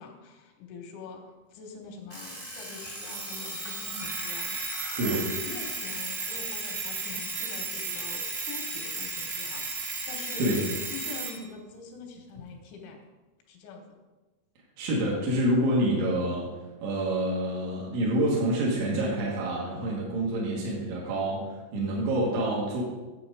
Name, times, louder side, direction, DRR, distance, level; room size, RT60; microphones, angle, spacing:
voice 1, 0.0-4.6 4.8-10.6 10.9-13.0 13.5-14.0, left 4 dB, 90° left, 3 dB, 3.7 m, -44 dB
Alarm, 2.1-11.4, right 3 dB, 25° right, 0.7 m, -34 dB
voice 2, 14.8-16.5 16.8-22.8, right 1 dB, 80° right, -4 dB, 4.0 m, -27 dB
9.6 x 7.8 x 4.9 m, 1.2 s
omnidirectional pair, 5.3 m